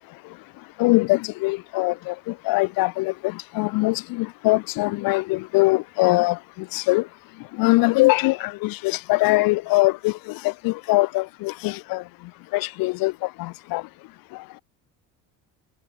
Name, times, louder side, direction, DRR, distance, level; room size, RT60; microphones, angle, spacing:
voice 1, 0.8-7.1 7.4-13.9 14.3-14.5, left 22 dB, 80° left, 2.0 m, -23 dB
cardioid pair, 135°, 34 cm